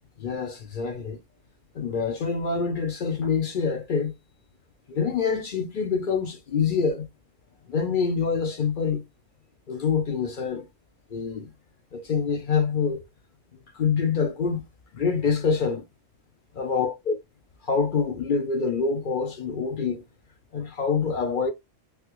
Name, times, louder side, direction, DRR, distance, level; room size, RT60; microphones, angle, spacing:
voice 1, 0.2-1.2 1.7-4.1 4.9-7.1 7.7-9.0 9.7-10.7 11.1-11.5 11.9-13.0 13.5-14.6 14.9-15.8 16.5-17.2 17.6-20.0 20.5-21.5, left 5 dB, 50° left, 0.7 m, -26 dB
3.3 x 2.3 x 2.9 m
omnidirectional pair, 1.3 m